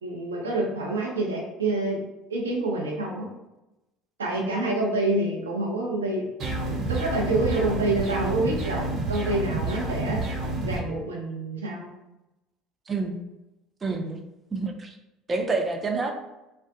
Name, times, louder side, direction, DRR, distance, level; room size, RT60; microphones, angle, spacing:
voice 1, 0.0-2.0 2.3-3.3 4.2-6.2 6.9-10.2 10.6-11.9 13.9-14.1, right 2 dB, 90° right, -1 dB, 0.5 m, -27 dB
sound 1, 6.4-10.8, right 2 dB, 50° right, 0.9 m, -29 dB
voice 2, 12.9-13.2 13.8-14.2 14.5-14.9 15.3-16.1, right 3 dB, 30° right, 4 dB, 0.4 m, -28 dB
2.5 x 2.0 x 2.6 m, 0.96 s
hypercardioid pair, 65°, 0 cm